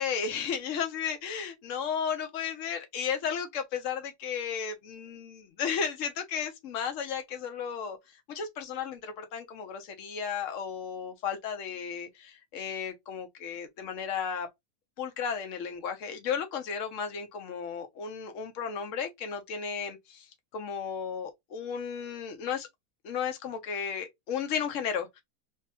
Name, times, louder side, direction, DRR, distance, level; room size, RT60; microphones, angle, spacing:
voice 1, 0.0-8.0 8.3-14.5 15.0-20.3 20.5-22.7 23.0-25.2, left 7 dB, 60° left, 1.1 m, -34 dB
3.3 x 2.8 x 2.8 m
omnidirectional pair, 1.5 m